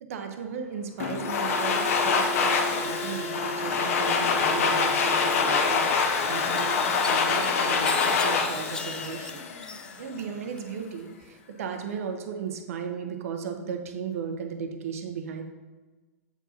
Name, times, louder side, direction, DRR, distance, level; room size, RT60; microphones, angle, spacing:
voice 1, 0.0-5.8 6.3-9.4 10.0-15.4, right 7 dB, 70° right, 5 dB, 0.8 m, -36 dB
Domestic sounds home sounds, 1.0-9.9, left 5 dB, 70° left, 0.7 m, -25 dB
sound 1, 1.0-6.0, equal, 30° left, 1.0 m, -37 dB
sound 2, 6.6-10.2 10.6-11.3, left 3 dB, 10° left, 0.3 m, -39 dB
7.9 x 4.7 x 2.8 m, 1.3 s
hypercardioid pair, 115°, 8 cm